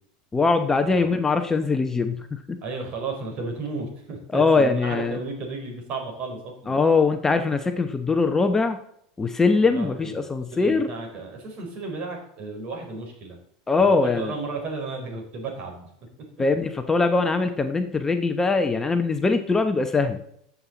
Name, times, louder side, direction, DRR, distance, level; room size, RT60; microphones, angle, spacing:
voice 1, 0.3-2.6 4.3-5.2 6.7-8.8 9.2-10.9 13.7-14.3 16.4-20.2, left 4 dB, 15° left, 7 dB, 1.0 m, -22 dB
voice 2, 2.6-6.8 9.6-10.2 10.5-13.4 13.8-15.9, right 3 dB, 50° right, 1 dB, 4.8 m, -34 dB
14.0 x 7.4 x 4.0 m, 0.68 s
hypercardioid pair, 105°, 3 cm